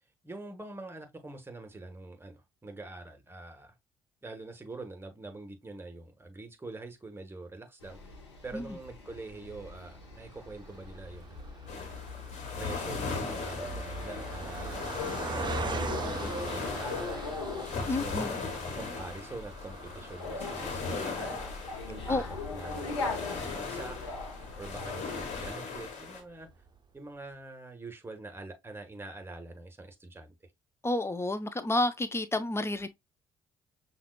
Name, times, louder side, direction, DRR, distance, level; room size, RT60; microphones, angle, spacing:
voice 1, 0.2-3.7 4.2-8.2 8.4-12.0 12.6-14.9 15.2-17.3 18.0-21.4 21.9-22.2 22.5-22.9 23.2-24.0 24.6-26.5 26.9-30.3, right 2 dB, 15° right, 1.3 m, -44 dB
sound 1, 7.8-25.5, left 3 dB, 90° left, 0.8 m, -41 dB
Car passing by, 10.2-25.6 26.2-26.3 26.5-26.7, right 3 dB, 30° right, 0.7 m, -42 dB
sound 2, 11.7-26.2, left 4 dB, 60° left, 1.4 m, -39 dB
voice 2, 17.9-18.4 22.1-22.2 30.8-32.9, left 2 dB, 20° left, 0.6 m, -30 dB
5.7 x 2.5 x 2.2 m
hypercardioid pair, 50°, 14 cm